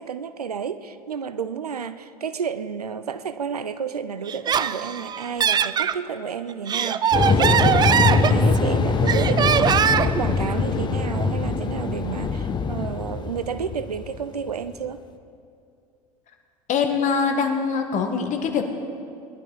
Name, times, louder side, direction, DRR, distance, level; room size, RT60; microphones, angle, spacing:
voice 1, 0.0-15.1, right 7 dB, 85° right, 13 dB, 0.6 m, -31 dB
Laughter, 4.3-6.0 6.5-8.7 9.1-10.2, right 8 dB, 20° right, 0.4 m, -21 dB
sound 1, 7.1-14.6, left 4 dB, 25° left, 1.0 m, -23 dB
voice 2, 16.7-18.7, left 5 dB, 40° left, 5 dB, 1.7 m, -23 dB
22.0 x 11.5 x 4.0 m, 2.4 s
figure-of-eight pair, 80°, 19 cm